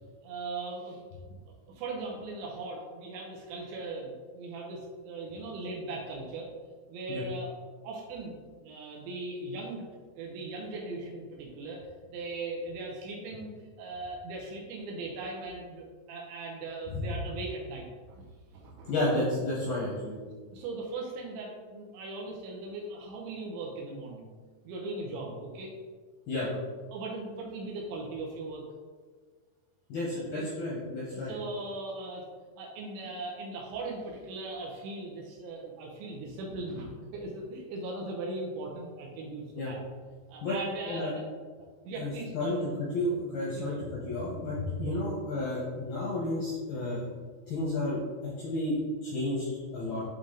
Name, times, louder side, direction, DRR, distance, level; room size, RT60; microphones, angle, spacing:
voice 1, 0.2-1.0 1.7-6.5 6.9-7.5 7.8-8.3 8.6-9.8 10.2-11.8 12.1-13.5 13.8-18.2 18.5-18.9 20.5-24.3 24.7-25.7 26.9-28.6 30.1-30.5 31.1-32.2 32.6-39.8 40.3-41.2 41.8-42.6 43.5-43.9 44.8-45.0, right 2 dB, 75° right, -2 dB, 3.0 m, -39 dB
voice 2, 18.9-20.2 26.3-26.5 29.9-31.3 39.6-39.7 40.4-40.6 40.9-41.1 42.0-47.1 47.5-48.0 48.4-49.5 49.7-50.1, left 1 dB, 75° left, -6 dB, 2.2 m, -31 dB
8.5 x 3.6 x 3.8 m, 1.5 s
omnidirectional pair, 5.9 m